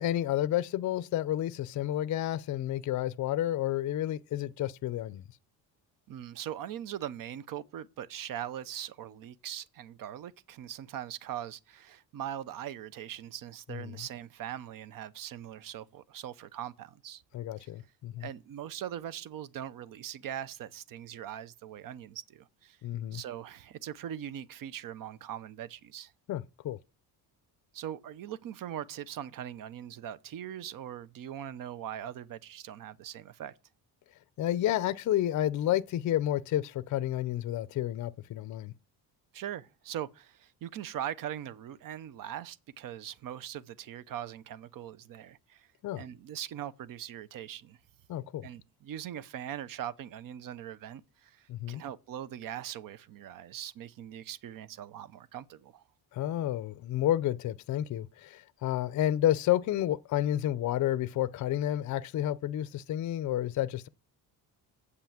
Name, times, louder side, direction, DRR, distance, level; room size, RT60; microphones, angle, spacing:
voice 1, 0.0-5.2 13.7-13.9 17.3-18.3 22.8-23.2 26.3-26.8 34.4-38.7 45.8-46.0 48.1-48.5 51.5-51.8 56.1-63.9, left 12 dB, 50° left, 0.5 m, -30 dB
voice 2, 6.1-17.2 17.6-17.7 18.2-22.8 23.1-26.1 27.7-33.5 39.3-45.7 46.0-47.8 48.4-55.8, right 10 dB, 55° right, 0.7 m, -41 dB
8.1 x 5.8 x 7.3 m
cardioid pair, 135°, 39 cm